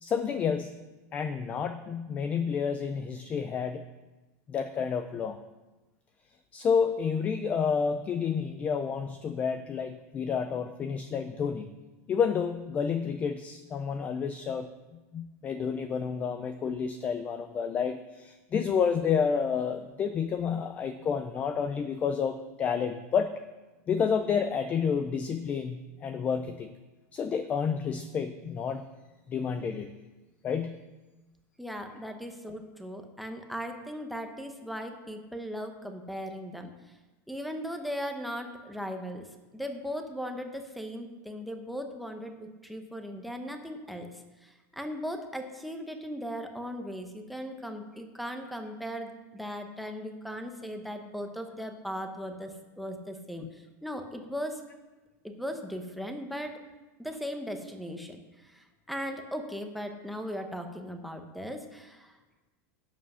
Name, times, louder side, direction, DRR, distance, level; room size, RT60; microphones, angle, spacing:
voice 1, 0.0-3.8 4.5-5.4 6.5-11.7 12.1-14.7 15.1-23.3 23.9-26.7 27.1-28.9 29.3-29.9 30.4-30.9 53.4-53.5, left 6 dB, 15° left, 10 dB, 0.4 m, -30 dB
voice 2, 31.6-36.7 37.3-39.3 39.5-44.1 44.4-54.6 55.2-56.6 57.0-62.2, equal, ahead, 5 dB, 0.8 m, -38 dB
11.5 x 7.7 x 5.5 m, 1.2 s
supercardioid pair, 175°, 9 cm